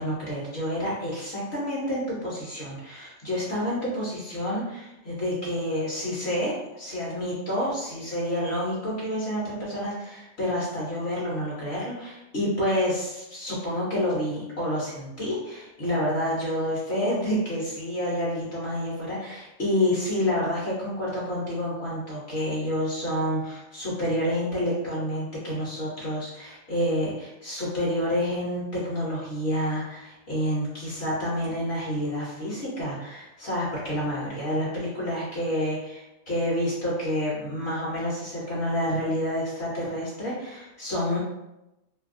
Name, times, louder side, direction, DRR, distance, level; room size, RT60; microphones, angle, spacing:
voice 1, 0.0-41.2, equal, 60° left, -6 dB, 1.1 m, -29 dB
2.7 x 2.7 x 2.5 m, 0.93 s
omnidirectional pair, 1.3 m